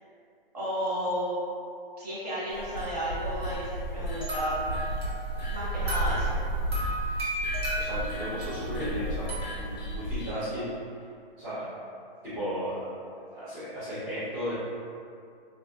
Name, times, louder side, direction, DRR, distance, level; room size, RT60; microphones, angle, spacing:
voice 1, 0.5-1.4 2.0-4.6 5.5-6.4, equal, 40° right, -9 dB, 0.9 m, -32 dB
sound 1, 2.5-10.3, right 1 dB, 50° left, 0.4 m, -33 dB
sound 2, 4.2-9.4, right 1 dB, 80° right, 1.1 m, -35 dB
voice 2, 7.8-10.7 11.4-11.7 12.2-12.9 13.3-14.6, equal, 5° right, -26 dB, 0.5 m, -34 dB
2.6 x 2.4 x 2.3 m, 2.5 s
hypercardioid pair, 175°, 30 cm